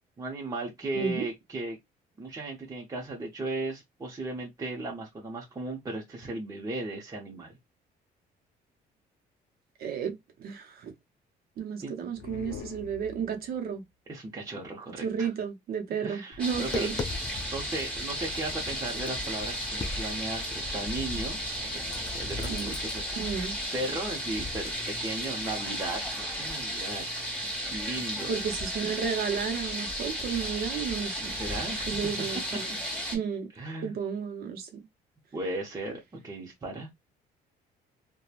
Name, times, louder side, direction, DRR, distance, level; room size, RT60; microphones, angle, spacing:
voice 1, 0.2-1.8 2.2-7.6 11.8-11.9 14.1-15.3 16.0-16.9 17.5-21.8 22.1-24.7 25.0-27.0 27.7-28.3 31.2-32.0 33.6-33.9 35.3-36.9, right 2 dB, 20° right, 0.8 m, -36 dB
voice 2, 0.9-1.3 9.8-10.9 11.6-13.8 15.0-16.9 22.5-22.7 23.1-23.6 28.3-31.4 31.9-32.6 33.1-33.5 33.8-34.8, right 7 dB, 65° right, 0.7 m, -32 dB
sound 1, 12.1-13.7, left 8 dB, 85° left, 0.5 m, -43 dB
Tap, 16.3-23.0, left 4 dB, 25° left, 0.4 m, -41 dB
sound 2, 16.4-33.2, equal, 5° left, 1.4 m, -34 dB
3.0 x 2.2 x 2.4 m
cardioid pair, 110°, 17 cm